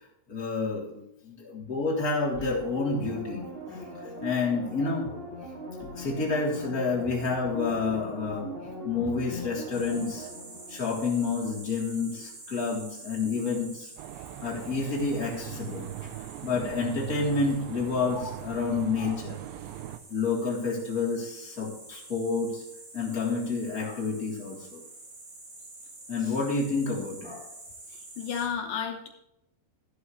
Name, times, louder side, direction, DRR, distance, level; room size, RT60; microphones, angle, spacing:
voice 1, 0.3-3.4 3.7-5.1 5.8-10.3 10.7-13.9 14.4-15.9 16.4-19.4 20.1-22.6 22.9-24.8 26.1-27.5, left 4 dB, 20° left, -3 dB, 3.2 m, -29 dB
sound 1, 2.3-11.7 12.0-12.1, equal, 20° right, 1.6 m, -40 dB
sound 2, 9.7-28.5, right 2 dB, 45° right, 6.4 m, -48 dB
sound 3, 14.0-20.0, right 13 dB, 80° right, 2.7 m, -40 dB
voice 2, 27.9-29.1, left 7 dB, 85° left, 4 dB, 1.8 m, -32 dB
13.0 x 11.5 x 3.2 m, 0.83 s
omnidirectional pair, 5.3 m